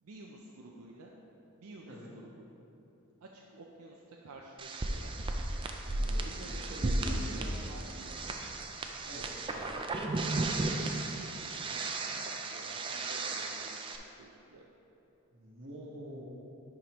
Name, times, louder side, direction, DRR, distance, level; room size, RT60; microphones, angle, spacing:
voice 1, 0.0-1.1 1.6-2.5 3.2-5.2 6.2-8.2 10.9-14.6, right 2 dB, 80° right, -1 dB, 0.5 m, -51 dB
sound 1, 4.6-14.0, right 2 dB, 25° right, 0.3 m, -35 dB
voice 2, 6.0-7.7 8.1-8.2 9.0-9.3 15.3-16.3, right 1 dB, 60° right, -3 dB, 1.2 m, -46 dB
10.5 x 4.9 x 3.0 m, 2.9 s
head